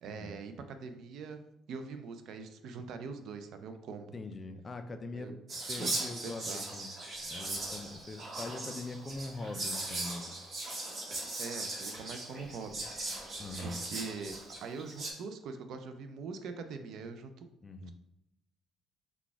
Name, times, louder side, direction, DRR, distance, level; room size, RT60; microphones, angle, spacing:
voice 1, 0.0-1.4 1.7-4.1 5.1-5.4 5.8-6.6 11.4-12.8 13.6-17.5, right 5 dB, 60° right, 8 dB, 0.4 m, -43 dB
voice 2, 4.1-6.4 6.7-6.9 7.3-10.4 13.4-13.8 17.6-17.9, left 2 dB, 25° left, 8 dB, 0.3 m, -42 dB
Whispering, 5.5-15.1, right 2 dB, 30° right, 1.0 m, -39 dB
4.0 x 2.3 x 4.5 m, 0.83 s
cardioid pair, 145°, 0 cm